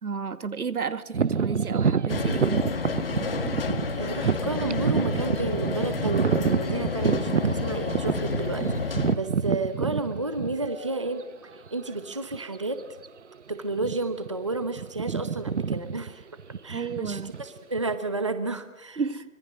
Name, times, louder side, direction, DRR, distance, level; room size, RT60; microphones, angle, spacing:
voice 1, 0.0-2.6 16.7-17.3 19.0-19.2, right 5 dB, 85° right, 2.0 m, -32 dB
sound 1, 1.1-10.9 11.6-11.7 12.3-12.6 12.8-13.1 13.7-14.3 14.5-17.9, right 6 dB, 55° right, 0.9 m, -28 dB
sound 2, 2.1-9.2, left 4 dB, 40° left, 1.6 m, -30 dB
voice 2, 3.9-11.2 11.7-12.8 13.5-16.2 16.6-19.0, right 2 dB, 20° right, 0.8 m, -31 dB
25.5 x 22.0 x 7.4 m
hypercardioid pair, 175°, 43 cm